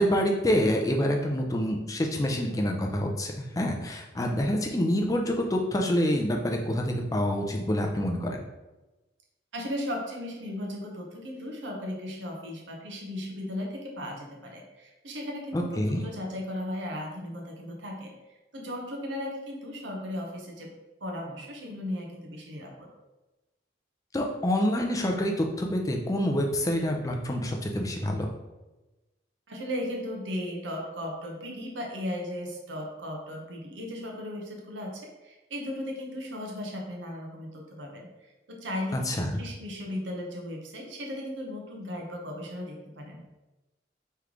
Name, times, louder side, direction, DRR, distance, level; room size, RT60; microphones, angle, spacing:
voice 1, 0.0-8.4 15.5-16.0 24.1-28.3 38.9-39.4, equal, 20° left, 2 dB, 0.4 m, -27 dB
voice 2, 9.5-18.1 18.5-20.7 21.0-22.9 29.5-38.1 38.5-43.2, left 1 dB, 80° right, 0 dB, 0.9 m, -36 dB
3.3 x 3.1 x 3.7 m, 1.1 s
head